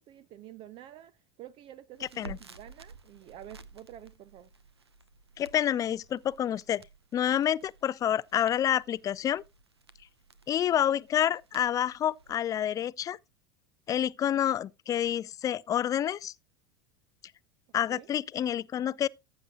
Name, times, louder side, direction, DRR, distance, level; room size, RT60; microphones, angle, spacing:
voice 1, 0.0-4.5 17.9-18.1, right 12 dB, 40° right, 0.6 m, -49 dB
Crackle, 1.9-12.4, right 3 dB, 90° right, 0.8 m, -53 dB
voice 2, 5.4-6.8 7.1-9.4 10.5-13.2 13.9-16.3 17.7-19.1, left 10 dB, 25° left, 0.4 m, -28 dB
14.5 x 7.8 x 2.3 m
figure-of-eight pair, 85°, 13 cm